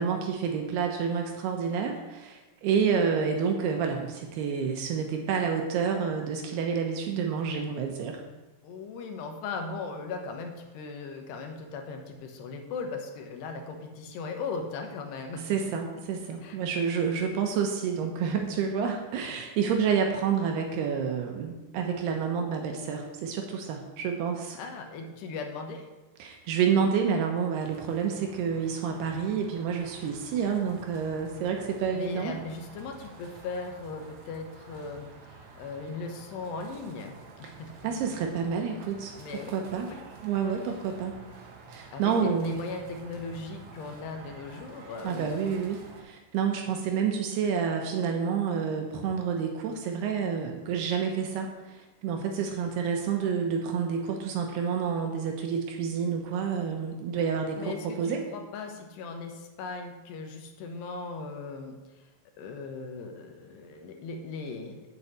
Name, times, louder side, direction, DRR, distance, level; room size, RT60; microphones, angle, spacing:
voice 1, 0.0-8.2 15.4-24.6 26.2-32.3 37.4-37.5 37.8-39.9 40.2-41.2 41.7-42.6 45.0-58.2, right 6 dB, 80° right, 3 dB, 2.8 m, -29 dB
voice 2, 8.6-15.8 16.4-17.1 24.6-25.9 29.9-30.1 31.9-38.1 39.2-39.6 39.9-40.1 41.9-45.3 57.6-61.8 62.4-64.8, left 4 dB, 80° left, 4 dB, 3.3 m, -38 dB
sound 1, 27.6-46.0, right 4 dB, 60° right, 2.2 m, -50 dB
7.8 x 7.1 x 8.2 m, 1.1 s
omnidirectional pair, 4.9 m